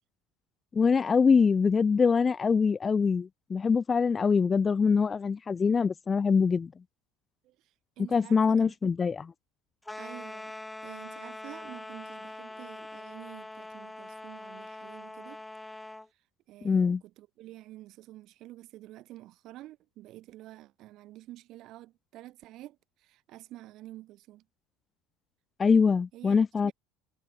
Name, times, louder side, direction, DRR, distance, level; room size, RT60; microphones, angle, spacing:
voice 1, 0.7-6.7 8.1-9.2 16.6-17.0 25.6-26.7, left 5 dB, 25° left, 0.4 m, -24 dB
voice 2, 7.4-8.9 10.0-15.4 16.5-24.4 26.1-26.7, right 16 dB, 55° right, 5.0 m, -49 dB
sound 1, 9.8-16.1, left 2 dB, 10° left, 2.9 m, -43 dB
supercardioid pair, 95°, 0 cm